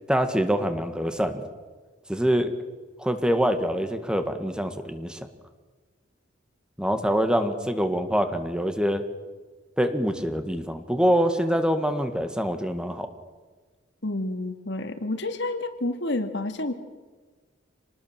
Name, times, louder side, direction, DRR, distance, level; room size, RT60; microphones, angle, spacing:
voice 1, 0.0-1.5 2.1-2.5 3.0-5.3 6.8-9.0 9.8-13.1, equal, 5° right, 8 dB, 1.7 m, -25 dB
voice 2, 14.0-16.7, left 2 dB, 65° left, 8 dB, 2.2 m, -29 dB
27.0 x 19.5 x 7.5 m, 1.4 s
head